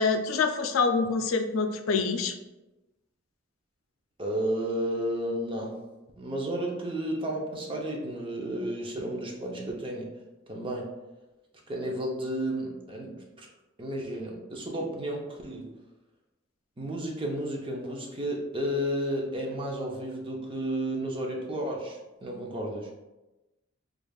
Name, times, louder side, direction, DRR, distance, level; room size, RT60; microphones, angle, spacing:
voice 1, 0.0-2.3, left 4 dB, 75° left, 6 dB, 0.4 m, -26 dB
voice 2, 4.2-5.7 6.2-10.1 10.5-10.9 11.7-13.5 13.8-15.7 16.8-22.9, right 1 dB, 25° right, -1 dB, 0.6 m, -32 dB
5.0 x 2.4 x 2.3 m, 1.0 s
head